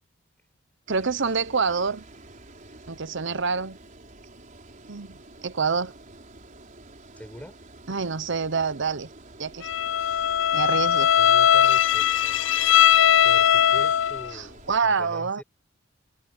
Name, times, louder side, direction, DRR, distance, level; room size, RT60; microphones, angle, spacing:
Water, 0.9-14.8, right 2 dB, 40° right, 5.0 m, -48 dB
voice 1, 0.9-2.0 2.9-3.8 4.9-5.9 7.9-9.1 9.4-9.7 10.5-11.1 14.3-15.4, right 5 dB, 65° right, 1.0 m, -27 dB
voice 2, 7.2-7.6 11.2-12.4 13.2-15.4, equal, 10° left, 5.4 m, -43 dB
Bowed string instrument, 9.6-14.3, left 10 dB, 65° left, 0.5 m, -19 dB
head